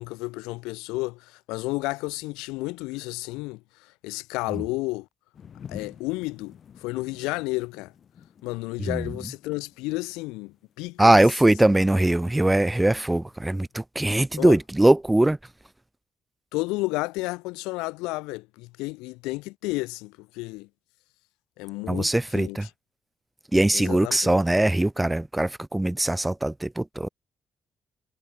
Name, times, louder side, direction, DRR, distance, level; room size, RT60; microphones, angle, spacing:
voice 1, 0.0-3.6 4.0-5.1 5.7-7.9 8.4-11.1 14.4-14.6 16.5-20.7 21.6-22.6 23.7-24.3, left 23 dB, 90° left, 0.6 m, -32 dB
sound 1, 5.3-13.8, left 8 dB, 60° left, 3.1 m, -49 dB
voice 2, 8.8-9.1 11.0-15.4 21.9-22.7 23.5-27.1, right 1 dB, 15° right, 1.5 m, -21 dB
supercardioid pair, 55°, 0 cm